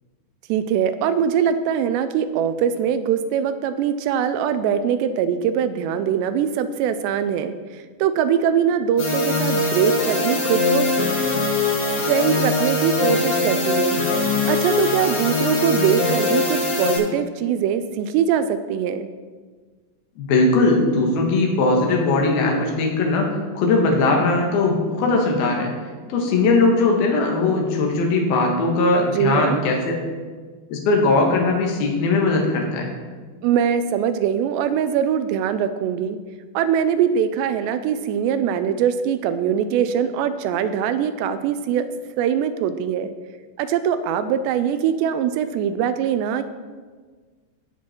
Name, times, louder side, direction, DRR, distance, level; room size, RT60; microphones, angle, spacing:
voice 1, 0.5-10.9 12.1-14.0 14.5-19.1 29.1-29.6 33.4-36.2 36.5-41.9 42.2-43.1 43.6-46.4, right 8 dB, 80° right, 11 dB, 2.7 m, -22 dB
sound 1, 9.0-17.0, left 2 dB, 80° left, 6.3 m, -21 dB
voice 2, 20.2-25.7 26.1-30.0 30.7-32.9, left 3 dB, 65° left, 1 dB, 3.3 m, -19 dB
17.5 x 6.3 x 4.4 m, 1.5 s
omnidirectional pair, 5.1 m